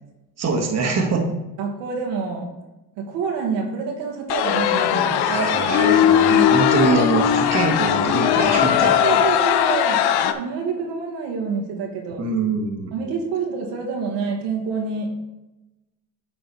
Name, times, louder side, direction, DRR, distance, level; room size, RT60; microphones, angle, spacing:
voice 1, 0.4-1.2 5.3-8.9 12.2-12.9, right 4 dB, 35° right, 1 dB, 1.5 m, -23 dB
voice 2, 1.6-2.5 3.0-5.3 6.3-6.5 9.0-10.0 10.3-12.2 12.9-15.1, right 5 dB, 75° right, 0 dB, 1.9 m, -27 dB
sound 1, 4.3-10.3, left 9 dB, 60° left, 0.7 m, -18 dB
8.9 x 3.9 x 4.1 m, 0.99 s
supercardioid pair, 85°, 44 cm